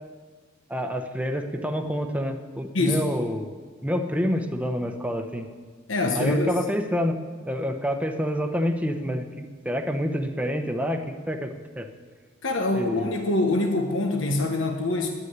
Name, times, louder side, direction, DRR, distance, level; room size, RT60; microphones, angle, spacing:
voice 1, 0.7-3.6 3.8-5.5 6.1-11.9 12.7-13.1, equal, 5° right, 6 dB, 0.9 m, -28 dB
voice 2, 5.9-6.6 12.4-15.1, left 2 dB, 75° left, 4 dB, 1.2 m, -24 dB
10.0 x 9.7 x 9.5 m, 1.5 s
head